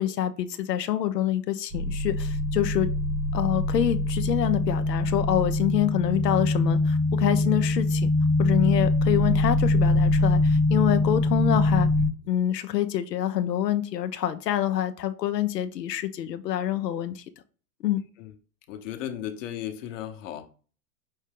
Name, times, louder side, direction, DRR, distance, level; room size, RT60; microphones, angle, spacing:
voice 1, 0.0-2.9 3.3-8.1 8.4-11.9 12.3-17.2 17.8-18.0, left 11 dB, 80° left, 0.7 m, -26 dB
sound 1, 1.7-12.1, left 2 dB, 10° right, 0.3 m, -23 dB
voice 2, 18.7-20.5, left 11 dB, 50° left, 0.9 m, -35 dB
5.5 x 2.7 x 3.6 m
hypercardioid pair, 110°, 49 cm